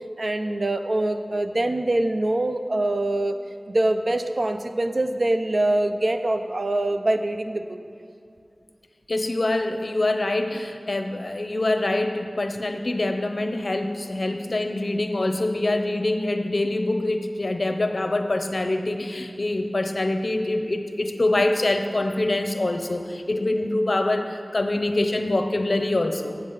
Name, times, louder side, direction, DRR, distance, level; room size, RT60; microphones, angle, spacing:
voice 1, 0.2-3.4 3.7-7.8, right 1 dB, 65° right, 7 dB, 0.5 m, -24 dB
voice 2, 9.1-26.4, left 2 dB, 60° left, 6 dB, 0.7 m, -25 dB
7.9 x 7.3 x 5.4 m, 2.5 s
wide cardioid pair, 45°, 0 cm